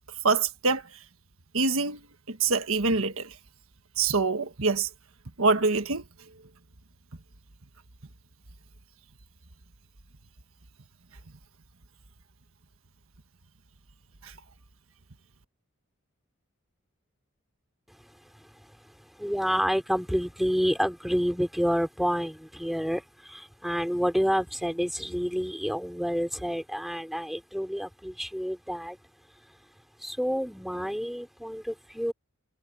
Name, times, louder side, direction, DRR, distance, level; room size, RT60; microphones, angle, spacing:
voice 1, 0.2-0.8 1.5-2.0 2.3-3.3 4.0-4.9 5.4-6.0, right 4 dB, 65° right, 1.5 m, -25 dB
voice 2, 18.3-29.0 30.0-32.1, equal, ahead, 4.0 m, -29 dB
head